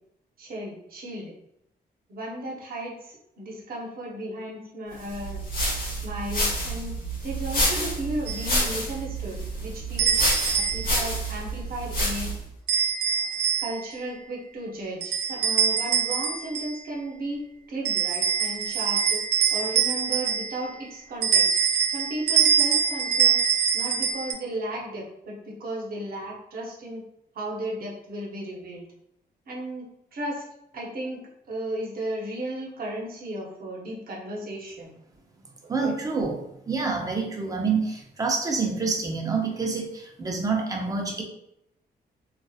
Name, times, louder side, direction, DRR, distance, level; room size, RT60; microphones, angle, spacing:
voice 1, 0.4-1.3 2.1-5.4 5.9-6.9 7.2-10.2 10.5-12.3 13.6-17.4 17.7-19.2 19.5-21.5 21.9-23.4 23.7-27.0 27.3-28.9 29.5-30.5 30.7-34.9 35.6-35.9, right 1 dB, 60° right, -3 dB, 0.8 m, -35 dB
sound 1, 5.1-12.5, equal, 55° left, 1.1 m, -28 dB
sound 2, 8.3-8.5 10.0-11.1 12.7-13.9 15.0-16.8 17.8-20.7 21.2-24.3, right 7 dB, 80° right, 0.4 m, -24 dB
voice 2, 35.7-36.4 36.7-41.2, right 4 dB, 20° right, 1 dB, 0.5 m, -27 dB
2.6 x 2.4 x 2.3 m, 0.79 s
cardioid pair, 125°, 17 cm